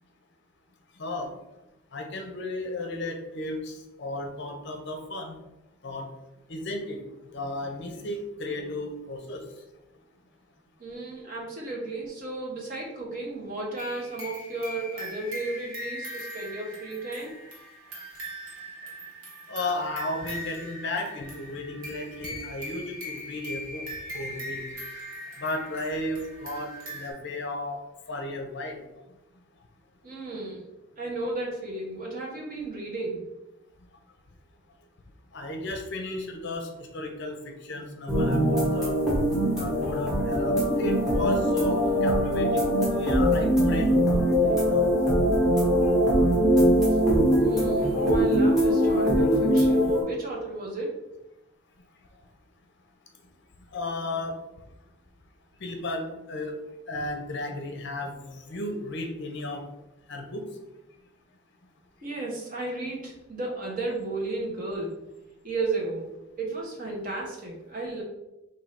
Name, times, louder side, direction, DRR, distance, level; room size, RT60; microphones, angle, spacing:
voice 1, 1.0-1.3 1.9-5.3 5.8-6.1 6.5-7.0 7.3-9.4 19.5-23.8 24.1-24.6 25.4-27.8 28.1-28.8 35.3-39.0 39.6-44.9 53.7-54.4 55.6-56.6 56.9-59.6 60.1-60.4, left 1 dB, 55° left, 4 dB, 0.6 m, -34 dB
voice 2, 10.8-17.3 30.0-30.7 31.0-33.2 47.4-51.0 62.0-65.0 65.4-66.1 66.4-68.0, right 2 dB, 40° right, -2 dB, 1.1 m, -33 dB
sound 1, 13.8-27.1, equal, 75° right, 1.2 m, -40 dB
sound 2, 38.1-50.0, equal, 5° right, 1.1 m, -22 dB
3.6 x 2.7 x 4.1 m, 0.95 s
head